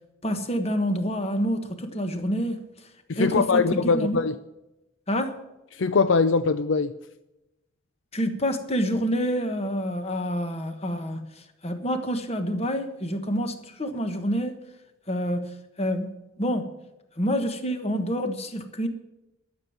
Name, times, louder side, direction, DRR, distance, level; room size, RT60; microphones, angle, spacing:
voice 1, 0.2-2.7 3.1-4.2 5.1-5.4 8.1-14.6 15.1-15.5 15.8-16.7 17.2-18.9, equal, 30° left, 1.3 m, -27 dB
voice 2, 3.1-4.3 5.7-6.9, left 4 dB, 65° left, 0.5 m, -22 dB
13.0 x 7.2 x 9.5 m
head